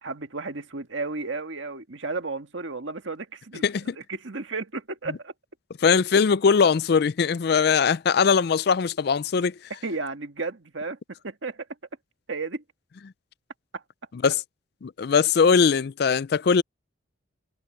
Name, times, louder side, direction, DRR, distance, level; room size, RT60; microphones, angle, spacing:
voice 1, 0.0-5.3 9.7-11.0 11.2-11.7 12.3-12.6 13.7-13.8, right 3 dB, 80° right, 1.6 m, -33 dB
voice 2, 3.6-3.9 5.8-9.5 14.1-14.4 14.8-16.6, left 6 dB, 55° left, 0.4 m, -21 dB
head